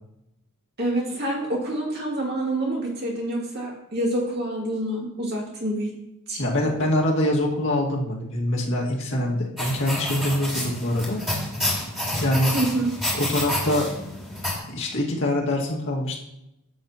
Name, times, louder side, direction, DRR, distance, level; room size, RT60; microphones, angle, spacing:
voice 1, 0.8-5.9 6.3-6.4 12.5-12.9, right 1 dB, 45° right, -2 dB, 2.4 m, -27 dB
voice 2, 6.4-11.2 12.2-12.6 13.2-13.9 14.7-16.2, left 1 dB, 55° left, -3 dB, 1.9 m, -24 dB
sound 1, 9.6-14.6, left 1 dB, ahead, 2.3 m, -29 dB
11.0 x 7.8 x 2.9 m, 0.85 s
head